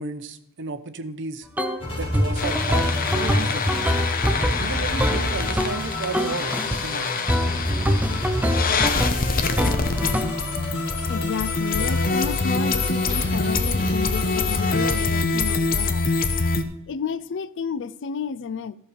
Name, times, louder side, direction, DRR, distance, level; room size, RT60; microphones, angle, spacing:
voice 1, 0.0-1.5 2.0-2.9 3.1-3.7 4.6-7.3, right 3 dB, 55° right, 0.8 m, -33 dB
sound 1, 1.6-1.8 2.1-5.9 6.1-6.8 7.3-10.5, equal, 5° right, 0.6 m, -24 dB
sound 2, 1.8-15.0, left 1 dB, 25° left, 4.3 m, -32 dB
sound 3, 2.4-16.6, left 4 dB, 40° left, 0.8 m, -25 dB
voice 2, 11.1-16.1 16.9-18.8, left 5 dB, 55° left, 0.4 m, -31 dB
14.0 x 6.6 x 5.0 m
head